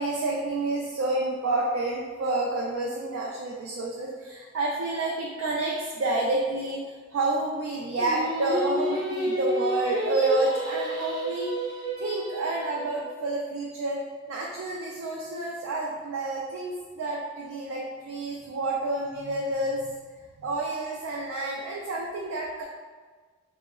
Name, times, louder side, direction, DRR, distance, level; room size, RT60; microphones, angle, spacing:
voice 1, 0.0-6.8 7.1-11.5 12.0-14.0 14.3-20.0 20.4-22.6, right 2 dB, 90° right, -3 dB, 0.4 m, -29 dB
Singing, 8.0-13.1, equal, 20° right, 0.5 m, -31 dB
3.7 x 2.0 x 2.2 m, 1.4 s
head